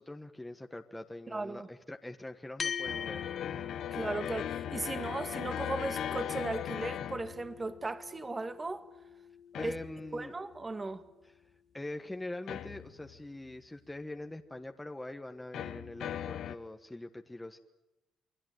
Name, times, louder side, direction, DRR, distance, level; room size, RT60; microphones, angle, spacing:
voice 1, 0.0-3.2 9.5-10.3 11.2-11.3 11.7-17.6, left 1 dB, 10° left, 1.4 m, -43 dB
voice 2, 1.3-1.7 3.9-8.9 9.6-9.7 10.1-11.0, right 2 dB, 25° right, 1.9 m, -37 dB
sound 1, 2.6-11.3, left 7 dB, 45° left, 1.4 m, -44 dB
sound 2, 2.9-7.9 9.5-10.3 12.5-13.3 15.5-16.6, left 10 dB, 75° left, 1.2 m, -38 dB
28.5 x 21.0 x 9.5 m
cardioid pair, 90°, 0 cm